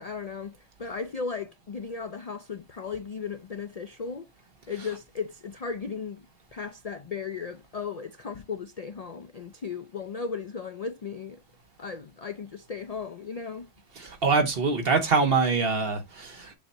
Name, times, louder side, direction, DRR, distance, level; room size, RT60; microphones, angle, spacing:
voice 1, 0.0-4.3 4.7-6.3 6.5-11.4 11.8-13.7, left 5 dB, 50° left, 0.5 m, -36 dB
voice 2, 14.0-16.5, right 4 dB, 50° right, 1.4 m, -24 dB
7.1 x 2.9 x 5.3 m
omnidirectional pair, 1.2 m